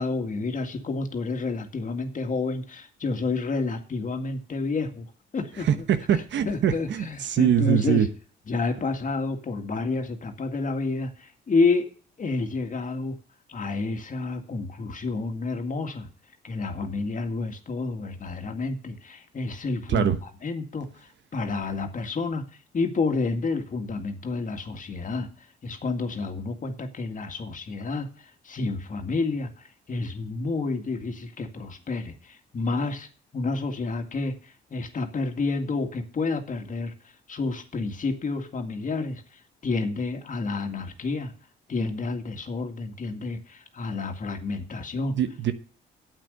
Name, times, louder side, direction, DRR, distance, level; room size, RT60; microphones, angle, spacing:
voice 1, 0.0-5.1 5.3-5.7 6.1-8.1 8.5-11.9 12.2-13.2 13.5-16.1 16.4-22.4 22.7-25.3 25.6-29.5 29.9-33.1 33.3-36.9 37.3-39.2 39.6-41.3 41.7-45.2, left 3 dB, 40° left, 2.1 m, -29 dB
voice 2, 5.7-8.1 19.9-20.2 45.1-45.5, right 9 dB, 65° right, 1.1 m, -23 dB
9.1 x 8.2 x 6.9 m
cardioid pair, 90°, 20 cm